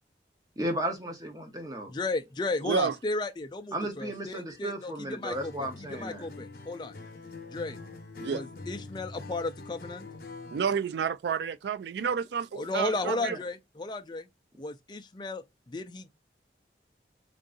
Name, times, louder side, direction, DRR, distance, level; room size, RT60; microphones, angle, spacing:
voice 1, 0.6-1.9 3.7-6.3 13.1-13.4, right 1 dB, 20° right, 0.9 m, -34 dB
voice 2, 1.9-6.9 7.5-7.8 8.3-10.1 12.5-14.3 14.6-16.1, left 2 dB, 25° left, 0.4 m, -34 dB
voice 3, 2.6-2.9 8.2-8.4 10.5-13.4, right 6 dB, 75° right, 0.3 m, -30 dB
Acoustic guitar, 5.3-10.7, left 3 dB, 55° left, 0.7 m, -44 dB
3.7 x 2.5 x 3.7 m
head